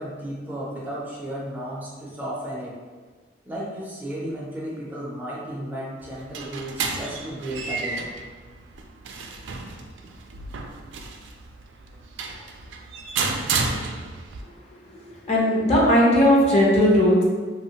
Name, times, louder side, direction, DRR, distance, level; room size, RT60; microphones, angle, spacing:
voice 1, 0.0-2.7 3.5-8.1, right 1 dB, 10° right, -6 dB, 0.5 m, -34 dB
sound 1, 6.0-14.4, right 4 dB, 85° right, 0.3 m, -31 dB
voice 2, 15.1-17.2, equal, 35° left, -4 dB, 0.6 m, -17 dB
3.0 x 2.1 x 2.8 m, 1.5 s
head